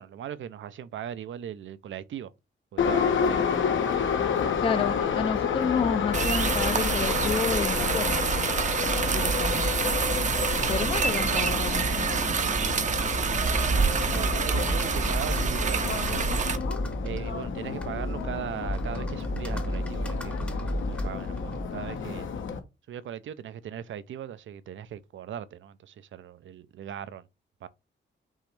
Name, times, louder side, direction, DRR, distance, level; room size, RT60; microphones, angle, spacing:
voice 1, 0.0-2.3 2.7-3.4 4.4-5.2 9.0-9.7 10.6-11.6 12.8-16.5 17.0-22.3 22.9-27.3 27.6-27.7, right 9 dB, 80° right, 0.5 m, -40 dB
Subway metro underground, 2.8-22.6, left 6 dB, 80° left, 1.0 m, -30 dB
voice 2, 4.6-8.1 9.1-9.7 10.7-11.9, left 6 dB, 30° left, 0.4 m, -30 dB
sound 1, 6.1-16.6, right 5 dB, 40° right, 0.6 m, -27 dB
Computer keyboard, 13.3-21.9, equal, 5° left, 0.7 m, -33 dB
5.5 x 3.0 x 3.1 m
wide cardioid pair, 155°, 20 cm